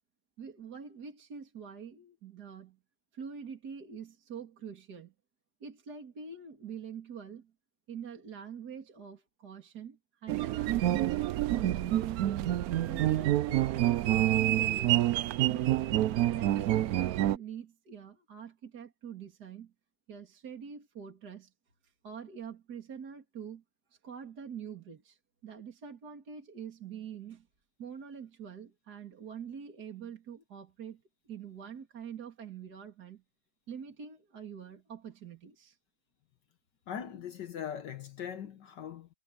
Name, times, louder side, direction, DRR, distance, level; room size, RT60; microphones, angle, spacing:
voice 1, 0.4-2.8 3.1-5.1 5.6-7.5 7.9-12.2 12.9-15.1 15.5-19.7 20.1-21.5 22.0-23.6 24.0-27.5 27.8-33.2 33.7-35.8, right 7 dB, 55° right, 3.1 m, -45 dB
sound 1, 10.3-17.4, right 14 dB, 75° right, 0.8 m, -27 dB
voice 2, 36.9-39.1, left 8 dB, 65° left, 1.6 m, -40 dB
omnidirectional pair, 2.1 m